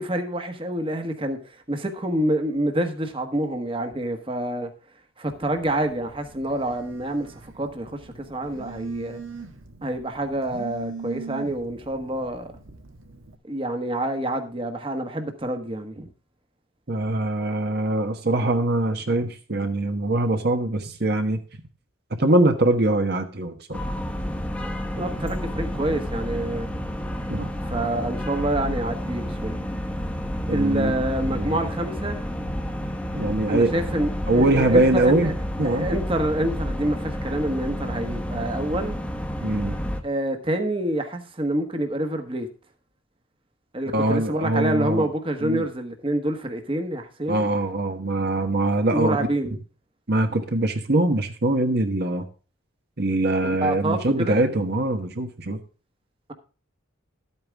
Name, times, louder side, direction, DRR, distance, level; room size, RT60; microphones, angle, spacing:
voice 1, 0.0-4.7 5.2-9.2 9.8-12.6 13.4-16.1 25.0-26.7 27.6-29.6 30.5-32.2 33.5-35.3 35.6-39.0 40.0-42.5 43.7-47.4 48.9-49.6 53.4-54.4, right 1 dB, 25° right, 1.3 m, -27 dB
Telephone, 5.3-13.3, right 5 dB, 75° right, 1.7 m, -41 dB
voice 2, 16.9-21.4 22.2-23.8 27.3-27.5 30.5-31.6 33.1-33.7 34.3-35.3 35.6-35.9 39.4-39.8 43.9-45.1 45.4-45.7 47.3-49.2 50.1-52.2 53.0-55.6, right 2 dB, 50° right, 1.2 m, -23 dB
sound 1, 23.7-40.0, equal, 5° left, 1.1 m, -30 dB
12.5 x 8.8 x 3.5 m
head